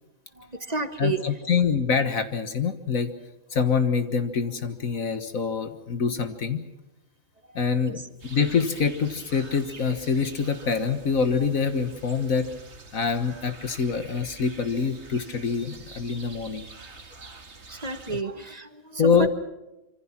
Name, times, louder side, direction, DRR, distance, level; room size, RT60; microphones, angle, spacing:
voice 1, 0.4-1.2 7.9-8.0 17.7-19.3, right 4 dB, 30° right, 9 dB, 1.3 m, -31 dB
voice 2, 1.0-3.1 3.5-6.7 7.6-12.5 12.9-16.7 18.1-18.2 19.0-19.3, left 5 dB, 70° left, 9 dB, 1.8 m, -25 dB
sound 1, 8.2-18.2, right 3 dB, 50° right, 2.2 m, -46 dB
26.0 x 25.5 x 6.0 m, 0.96 s
omnidirectional pair, 1.5 m